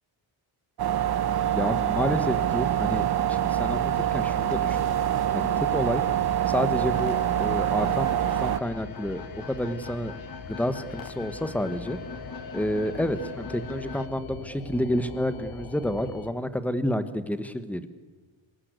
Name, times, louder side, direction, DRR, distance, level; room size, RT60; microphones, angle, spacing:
sound 1, 0.8-8.6, right 11 dB, 50° right, 1.0 m, -25 dB
sound 2, 1.3-16.3, left 4 dB, 75° left, 3.7 m, -44 dB
voice 1, 1.5-3.0 3.3-5.0 5.3-6.0 6.5-10.1 10.4-12.0 12.5-17.9, equal, 5° left, 11 dB, 1.5 m, -29 dB
sound 3, 6.9-14.1, left 5 dB, 45° left, 1.9 m, -41 dB
25.0 x 20.0 x 8.3 m, 1.4 s
cardioid pair, 140°, 48 cm